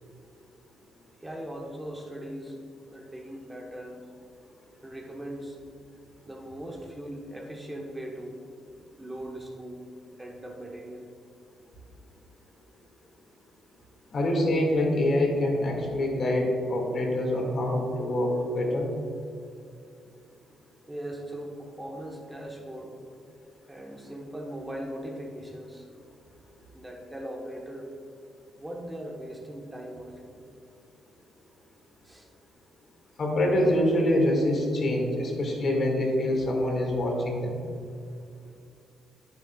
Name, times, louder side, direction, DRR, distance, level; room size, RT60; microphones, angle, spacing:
voice 1, 1.2-2.6 2.9-4.1 4.8-5.6 6.3-8.4 8.8-9.8 10.2-11.1 20.9-23.0 23.7-25.9 26.7-27.9 28.6-30.5 32.0-32.3, right 1 dB, 15° right, 0 dB, 1.2 m, -39 dB
voice 2, 14.1-18.9 33.2-37.6, left 1 dB, 50° left, -1 dB, 2.1 m, -25 dB
10.0 x 9.3 x 2.4 m, 2.6 s
cardioid pair, 90°, 0 cm